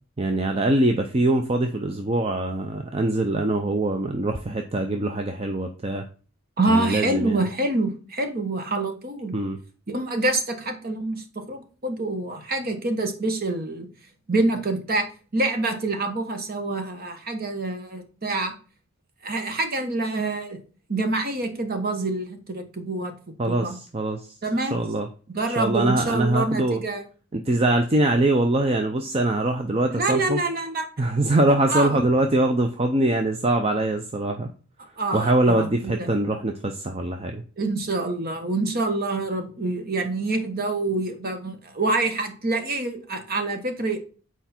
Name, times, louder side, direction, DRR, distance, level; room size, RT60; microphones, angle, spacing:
voice 1, 0.2-6.0 6.7-7.5 9.3-9.6 23.4-25.1 25.6-26.8 27.3-30.4 31.0-34.5 35.1-37.4, right 2 dB, 25° right, 5 dB, 0.5 m, -23 dB
voice 2, 6.6-9.3 9.9-13.9 14.3-15.1 15.3-18.5 19.2-20.6 20.9-23.1 23.5-23.8 24.4-24.8 25.3-27.0 29.9-30.9 31.4-32.0 34.8-36.1 37.6-44.0, right 2 dB, 45° right, 6 dB, 1.2 m, -26 dB
8.0 x 4.6 x 4.3 m, 0.39 s
head